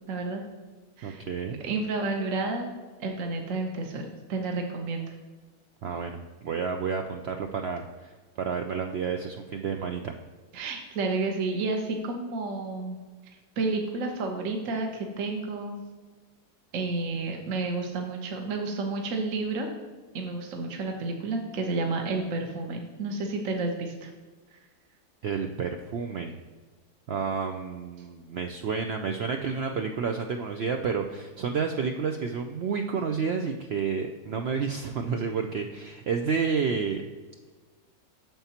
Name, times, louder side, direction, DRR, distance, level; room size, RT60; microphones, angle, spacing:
voice 1, 0.1-0.4 1.0-1.2 1.6-2.7 3.0-5.1 10.5-13.0 13.6-15.8 16.7-19.7 20.1-24.1, right 3 dB, 60° right, 3 dB, 1.2 m, -31 dB
voice 2, 1.0-1.6 5.8-10.1 25.2-26.4 27.1-37.0, right 5 dB, 90° right, 4 dB, 0.5 m, -30 dB
9.1 x 6.9 x 2.9 m, 1.4 s
omnidirectional pair, 1.7 m